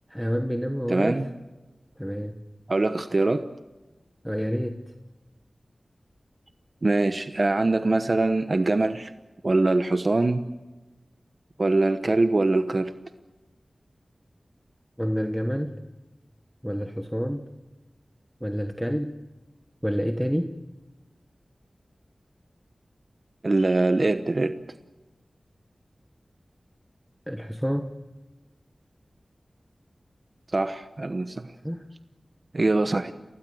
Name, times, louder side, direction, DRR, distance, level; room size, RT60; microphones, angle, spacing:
voice 1, 0.1-1.2 2.0-2.4 4.2-4.8 15.0-15.7 16.6-17.5 18.4-19.2 19.8-20.5 27.3-27.9 31.6-31.8, equal, ahead, 6 dB, 1.2 m, -28 dB
voice 2, 0.9-1.3 2.7-3.5 6.8-9.1 9.4-10.4 11.6-12.9 23.4-24.5 30.5-31.4 32.5-33.1, right 2 dB, 45° right, 9 dB, 1.0 m, -23 dB
29.0 x 18.0 x 7.9 m, 1.1 s
wide cardioid pair, 65°, 0 cm